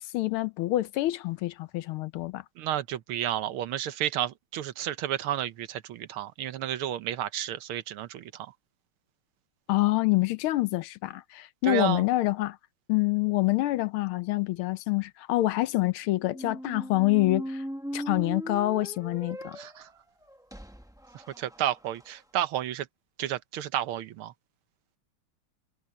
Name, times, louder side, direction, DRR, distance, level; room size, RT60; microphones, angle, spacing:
voice 1, 0.0-2.4 9.7-12.6 12.9-17.6 17.9-19.6, left 18 dB, 80° left, 1.5 m, -26 dB
voice 2, 2.6-8.5 11.6-12.0 19.6-19.9 21.1-22.9 23.2-24.3, right 11 dB, 80° right, 1.7 m, -31 dB
sound 1, 16.2-22.1, equal, 5° right, 0.4 m, -39 dB
omnidirectional pair, 2.3 m